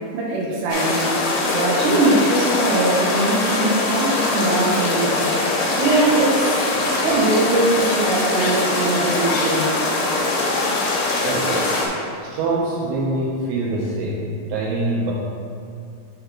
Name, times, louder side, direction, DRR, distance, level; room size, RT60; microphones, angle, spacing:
voice 1, 0.1-1.1 1.5-5.3 5.8-9.7, right 2 dB, 70° right, -6 dB, 3.2 m, -21 dB
sound 1, 0.7-11.9, left 2 dB, 75° left, 2.7 m, -22 dB
sound 2, 5.8-6.1 7.0-7.2 8.4-8.5 9.2-9.5 10.2-11.0 11.7-11.8, left 4 dB, 90° left, 2.1 m, -31 dB
voice 2, 11.2-11.7 12.2-15.1, right 2 dB, 85° right, -4 dB, 2.9 m, -24 dB
6.7 x 2.8 x 5.5 m, 2.4 s
omnidirectional pair, 5.3 m